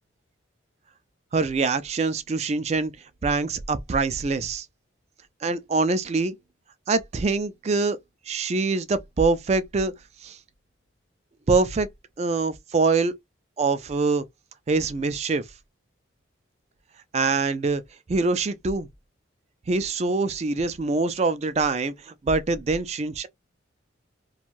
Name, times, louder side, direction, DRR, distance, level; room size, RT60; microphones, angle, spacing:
voice 1, 1.3-3.0 3.2-4.7 5.4-6.4 6.9-8.0 8.3-9.9 10.2-10.4 11.5-11.9 12.2-13.1 13.6-14.2 14.7-15.4 17.1-17.8 18.1-18.9 19.7-23.3, right 3 dB, 35° right, 0.3 m, -24 dB
2.5 x 2.2 x 2.9 m
head